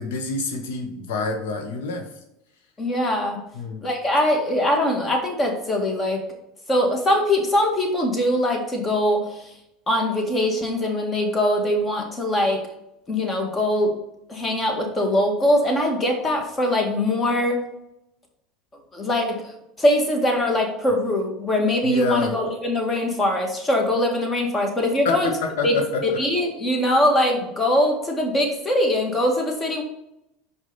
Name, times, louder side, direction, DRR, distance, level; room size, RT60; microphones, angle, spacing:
voice 1, 0.0-2.1 3.5-3.8 21.8-22.3 25.0-26.0, left 4 dB, 75° left, 4 dB, 1.4 m, -27 dB
voice 2, 2.8-3.4 3.8-6.2 6.7-9.5 9.9-12.6 13.1-13.9 14.3-17.6 18.9-19.5 19.8-25.3 25.6-25.8 26.0-29.8, left 1 dB, 25° left, 2 dB, 1.9 m, -22 dB
5.4 x 4.9 x 5.5 m, 0.84 s
hypercardioid pair, 90°, 0 cm